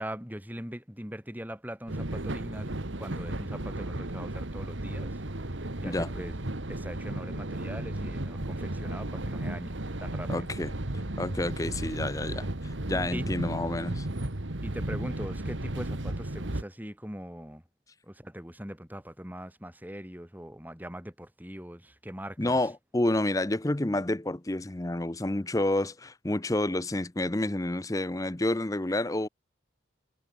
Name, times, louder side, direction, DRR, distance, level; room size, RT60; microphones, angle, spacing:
voice 1, 0.0-5.2 5.8-6.3 6.7-9.7 10.0-10.5 13.1-13.3 14.6-17.6 18.0-22.6, equal, 10° right, 4.6 m, -41 dB
sound 1, 1.9-16.6, right 1 dB, 80° right, 2.0 m, -34 dB
voice 2, 10.3-10.8 11.2-14.1 22.4-29.3, left 1 dB, 20° left, 0.6 m, -29 dB
head